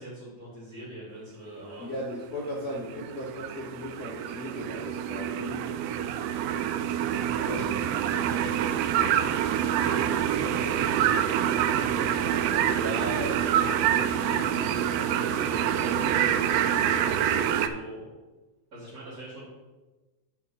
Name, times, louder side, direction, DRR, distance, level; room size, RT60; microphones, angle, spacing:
voice 1, 0.0-1.9 7.0-7.7 8.2-8.7 9.6-12.7 15.4-18.1 18.7-19.5, right 1 dB, 30° right, -6 dB, 2.8 m, -43 dB
voice 2, 1.8-5.6 7.5-7.8 12.7-14.1, equal, 80° left, -2 dB, 0.8 m, -37 dB
sound 1, 2.6-17.7, right 9 dB, 90° right, 1.4 m, -26 dB
8.9 x 4.6 x 5.5 m, 1.2 s
omnidirectional pair, 3.4 m